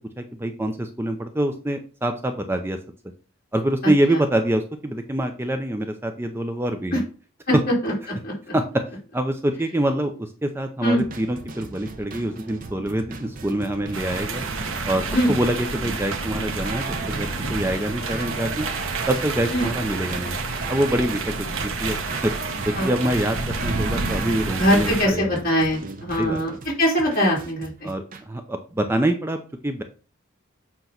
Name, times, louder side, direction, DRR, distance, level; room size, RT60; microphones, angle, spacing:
voice 1, 0.2-2.8 3.5-7.0 7.5-7.6 8.5-8.8 9.1-14.5 14.9-18.7 19.1-20.4 20.7-22.0 22.2-22.3 22.7-23.4 23.6-25.4 26.2-26.4 27.8-29.8, right 1 dB, 10° right, 6 dB, 0.5 m, -25 dB
sound 1, 11.0-28.2, right 3 dB, 40° right, 0.8 m, -37 dB
sound 2, 13.9-25.1, right 3 dB, 85° right, 1.1 m, -29 dB
voice 2, 24.6-26.5 26.8-27.9, equal, 45° left, -4 dB, 3.3 m, -21 dB
7.9 x 3.0 x 5.8 m, 0.38 s
head